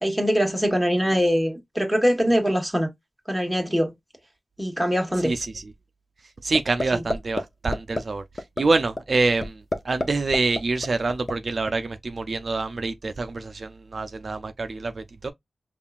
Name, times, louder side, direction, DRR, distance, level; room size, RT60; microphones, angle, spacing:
voice 1, 0.0-2.9 3.3-3.9 4.6-5.3, equal, ahead, 1.2 m, -22 dB
voice 2, 5.2-5.6 6.4-15.3, right 3 dB, 55° right, 0.4 m, -26 dB
sound 1, 6.5-6.8 7.1-7.4 7.7-8.0 8.4-8.6 9.0-9.1 9.4-10.1 10.3-11.3, left 2 dB, 40° left, 0.6 m, -26 dB
5.4 x 2.4 x 2.3 m
wide cardioid pair, 120°, 0 cm